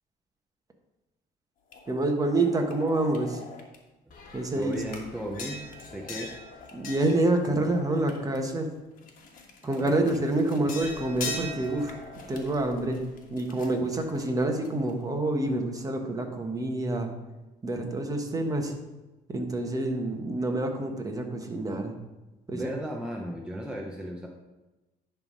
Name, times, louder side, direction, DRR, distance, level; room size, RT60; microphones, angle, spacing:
sound 1, 1.7-3.7 4.1-8.5 9.0-14.9, left 3 dB, 55° left, 1.5 m, -42 dB
voice 1, 1.9-3.4 4.3-4.8 6.7-8.7 9.6-11.9 12.3-13.0 13.3-17.1 17.6-18.8 19.3-21.9 22.5-22.7, right 2 dB, 20° right, 3 dB, 1.2 m, -27 dB
voice 2, 4.5-6.4 9.6-10.2 10.6-10.7 13.8-13.9 22.5-24.3, equal, 5° right, -1 dB, 0.8 m, -36 dB
10.5 x 3.5 x 5.4 m, 1.1 s
cardioid pair, 110°, 17 cm